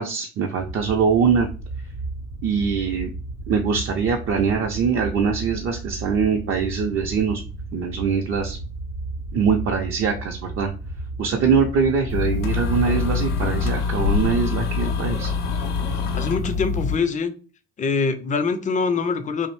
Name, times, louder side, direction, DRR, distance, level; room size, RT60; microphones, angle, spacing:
voice 1, 0.0-1.5 2.4-3.1 3.5-7.4 7.7-8.6 9.3-10.7 11.2-15.3, right 6 dB, 40° right, 2 dB, 0.4 m, -22 dB
sound 1, 0.6-13.7, right 2 dB, 80° right, 0.7 m, -34 dB
sound 2, 12.1-17.0, left 5 dB, 85° left, 0.5 m, -24 dB
voice 2, 16.1-17.3 17.8-19.5, left 4 dB, 25° left, 10 dB, 0.4 m, -24 dB
2.5 x 2.0 x 3.0 m, 0.35 s
hypercardioid pair, 50°, 34 cm